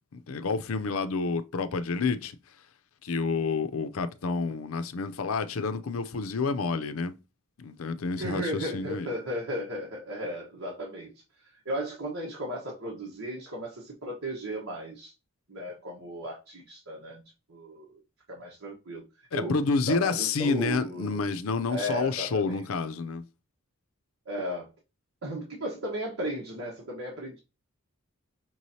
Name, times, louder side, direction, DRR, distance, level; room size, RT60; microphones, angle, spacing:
voice 1, 0.1-2.4 3.0-7.2 7.6-9.1 19.3-23.2, left 4 dB, 80° left, 0.5 m, -29 dB
voice 2, 8.2-11.1 11.6-15.1 15.5-17.2 17.5-17.9 18.3-19.0 19.3-21.2 21.7-22.6 24.3-24.7 25.2-27.4, right 1 dB, 85° right, 1.2 m, -35 dB
5.9 x 3.1 x 2.8 m
head